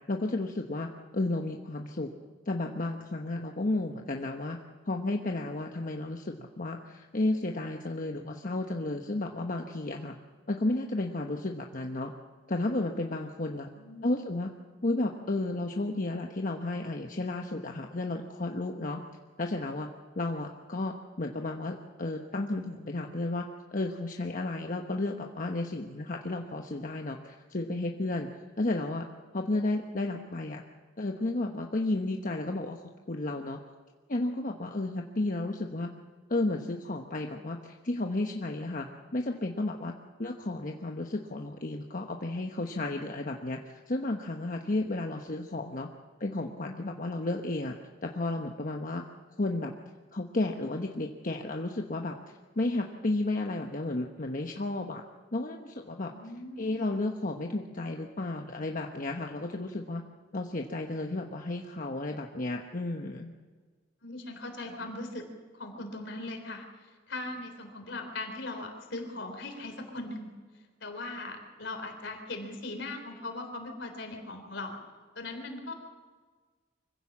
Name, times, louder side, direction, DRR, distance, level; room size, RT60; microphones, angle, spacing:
voice 1, 0.1-2.1 2.5-4.6 4.9-10.1 10.5-12.1 12.5-13.7 14.0-14.5 14.8-19.0 19.4-19.9 20.2-23.5 23.7-28.3 28.6-29.1 29.3-30.6 31.0-32.8 33.1-33.6 34.1-35.9 36.3-39.9 40.2-43.6 43.9-45.9 46.2-47.7 48.0-49.0 49.4-49.7 50.1-52.1 52.6-55.0 55.3-56.1 56.6-60.0 60.3-63.3, left 2 dB, 45° left, 2 dB, 1.1 m, -32 dB
voice 2, 13.7-14.1 56.1-56.8 64.0-65.2 65.5-66.7 67.1-70.3 70.8-74.8 75.2-75.7, left 2 dB, 70° left, 5 dB, 3.7 m, -39 dB
24.5 x 16.0 x 7.4 m, 1.5 s
head